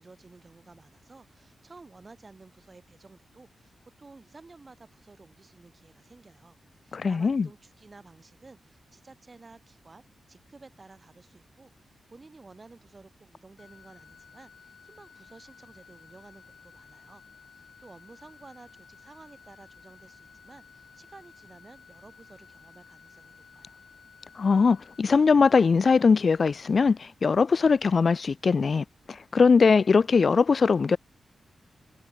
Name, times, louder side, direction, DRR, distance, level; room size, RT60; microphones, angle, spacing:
voice 1, 0.0-6.6 6.8-10.0 10.3-17.2 17.5-23.8, right 3 dB, 25° right, 7.1 m, -53 dB
voice 2, 6.9-7.5 24.4-31.0, left 5 dB, 40° left, 0.8 m, -21 dB
sound 1, 13.6-25.0, left 7 dB, 60° left, 7.2 m, -54 dB
wide cardioid pair, 170°, 0 cm